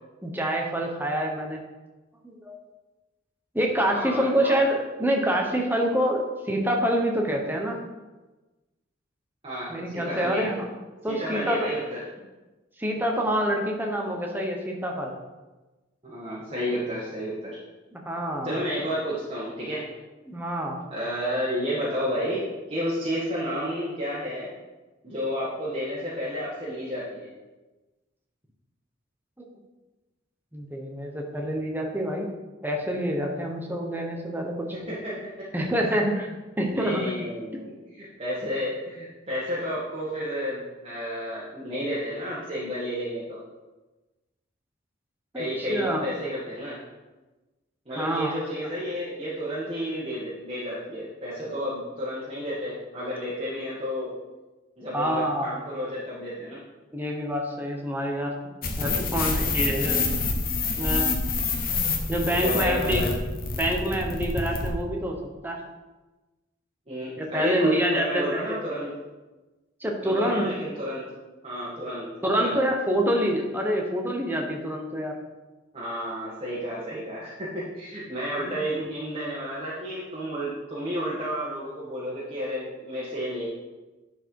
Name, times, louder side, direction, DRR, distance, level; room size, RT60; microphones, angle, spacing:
voice 1, 0.2-1.6 2.2-2.6 3.5-7.8 9.7-10.6 11.0-11.7 12.8-15.1 17.9-18.5 20.3-20.8 29.4-29.5 30.5-32.3 32.6-34.7 35.5-36.3 36.6-37.1 45.3-46.0 48.0-48.3 54.9-55.5 56.9-58.3 58.8-60.1 60.8-61.1 62.1-63.1 63.6-65.2 65.4-65.6 67.2-68.4 69.8-70.5 72.2-75.2 78.4-78.6, equal, 10° right, 1 dB, 1.1 m, -26 dB
voice 2, 3.9-4.6 9.4-10.6 11.1-12.0 16.0-17.6 18.4-19.8 20.9-24.5 25.0-27.3 34.7-35.5 36.7-43.4 45.3-46.8 47.8-54.1 54.8-56.6 59.2-59.7 62.2-63.1 66.9-68.9 70.0-71.1 71.4-72.5 75.7-83.5, equal, 30° right, -8 dB, 1.8 m, -31 dB
sound 1, 58.6-64.7, left 4 dB, 50° left, 1.2 m, -27 dB
10.5 x 4.7 x 4.8 m, 1.2 s
head